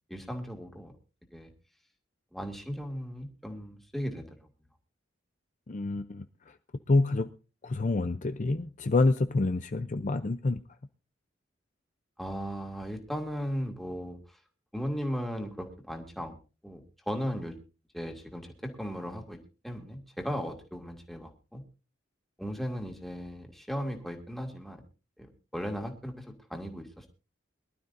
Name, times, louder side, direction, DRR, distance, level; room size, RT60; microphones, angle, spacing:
voice 1, 0.1-0.9 1.3-1.5 2.3-4.4 12.2-14.2 14.7-16.4 16.6-17.6 17.9-19.4 19.6-21.6 22.4-24.8 25.2-27.1, equal, ahead, 2.2 m, -37 dB
voice 2, 5.7-6.6 6.9-7.3 7.6-10.6, left 2 dB, 40° left, 0.6 m, -27 dB
23.5 x 12.5 x 2.6 m
head